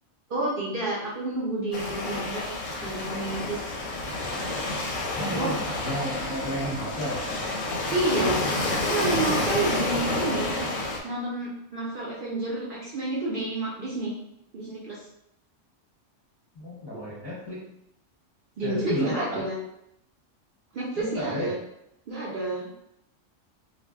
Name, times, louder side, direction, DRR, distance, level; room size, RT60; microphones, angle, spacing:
voice 1, 0.3-2.5 2.8-3.6 5.4-5.6 7.9-8.4 8.9-10.6 11.0-14.1 14.5-15.0 18.6-19.6 20.7-21.6 22.1-22.7, right 2 dB, 55° right, -6 dB, 0.6 m, -29 dB
Waves surf, 1.7-11.0, left 2 dB, 85° left, 1.0 m, -29 dB
voice 2, 5.2-7.2 16.5-17.6 18.6-19.5 21.0-21.5, equal, 30° left, -8 dB, 0.5 m, -32 dB
2.5 x 2.0 x 3.4 m, 0.80 s
omnidirectional pair, 1.3 m